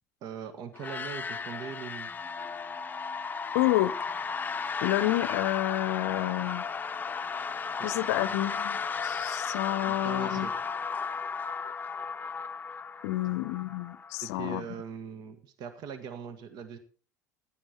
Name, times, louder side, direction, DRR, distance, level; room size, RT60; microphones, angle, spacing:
voice 1, 0.2-2.1 7.8-8.4 9.9-10.5 14.2-16.8, right 7 dB, 50° right, 1.7 m, -41 dB
sound 1, 0.7-14.5, left 5 dB, 20° left, 0.8 m, -35 dB
voice 2, 3.5-3.9 4.8-6.6 7.8-10.5 13.0-14.6, left 17 dB, 65° left, 0.7 m, -29 dB
15.0 x 11.0 x 4.4 m
figure-of-eight pair, 70°, 9 cm